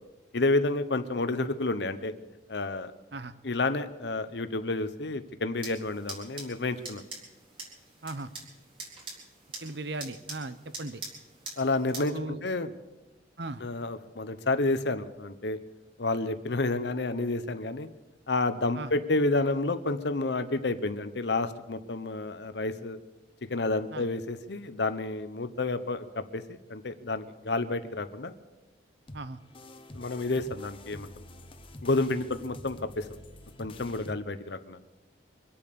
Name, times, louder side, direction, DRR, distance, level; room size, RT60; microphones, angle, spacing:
voice 1, 0.3-2.1 2.5-2.9 3.4-7.0 11.6-12.7 13.6-15.6 16.0-17.9 18.3-23.0 23.5-28.3 29.9-31.2 31.8-33.1 33.6-34.8, left 2 dB, 65° left, 10 dB, 0.9 m, -30 dB
sound 1, 5.6-12.1, right 3 dB, 30° right, 4.0 m, -44 dB
voice 2, 9.6-11.0 12.1-12.4 13.4-13.6 18.8-18.9 23.9-24.0 29.1-29.4, right 2 dB, 65° right, 13 dB, 0.9 m, -37 dB
sound 2, 29.1-34.1, left 1 dB, 30° left, 0.9 m, -47 dB
24.5 x 8.6 x 6.9 m, 1.1 s
head